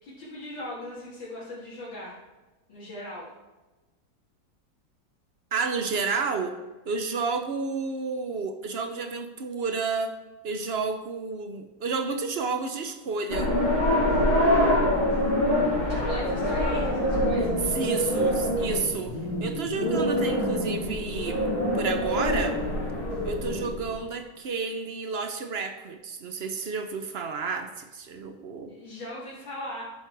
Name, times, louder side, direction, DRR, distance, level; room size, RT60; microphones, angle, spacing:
voice 1, 0.0-2.2 2.7-3.3 15.9-17.7 28.7-29.8, left 1 dB, 90° left, -9 dB, 3.1 m, -38 dB
voice 2, 5.5-6.6 6.9-10.1 10.4-13.5 17.7-21.4 21.7-22.6 23.2-28.7, right 4 dB, 55° right, 7 dB, 0.7 m, -31 dB
sound 1, 13.3-24.0, equal, 55° left, 3.2 m, -25 dB
12.0 x 7.4 x 4.7 m, 1.1 s
omnidirectional pair, 2.0 m